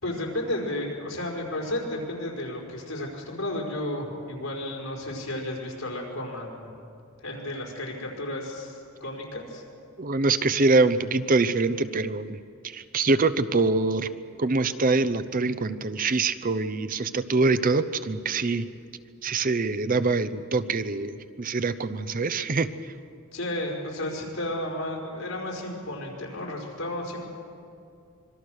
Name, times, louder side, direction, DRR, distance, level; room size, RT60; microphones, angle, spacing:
voice 1, 0.0-6.7 7.2-9.6 23.3-27.2, left 1 dB, 85° left, -1 dB, 5.1 m, -33 dB
voice 2, 10.0-14.1 14.4-18.7 19.2-22.9, right 3 dB, 40° right, 13 dB, 0.8 m, -24 dB
25.5 x 23.0 x 6.5 m, 2.5 s
head